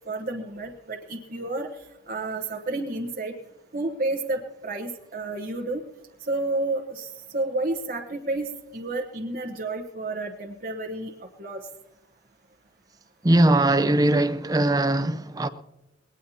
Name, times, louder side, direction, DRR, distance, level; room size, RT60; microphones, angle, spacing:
voice 1, 0.1-1.7 2.1-3.3 3.7-5.8 6.3-11.6, right 2 dB, 45° right, 1.1 m, -30 dB
voice 2, 13.2-15.5, right 1 dB, 20° right, 0.6 m, -20 dB
20.0 x 18.5 x 2.8 m
head